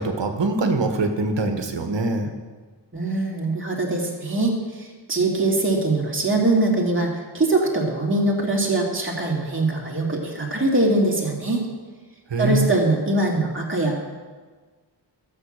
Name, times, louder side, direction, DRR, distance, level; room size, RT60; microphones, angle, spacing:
voice 1, 0.0-2.3 12.3-12.7, right 3 dB, 75° right, 5 dB, 1.4 m, -23 dB
voice 2, 2.9-11.7 12.4-14.2, right 2 dB, 30° right, -2 dB, 2.8 m, -22 dB
13.0 x 7.6 x 6.6 m, 1.4 s
wide cardioid pair, 70°, 43 cm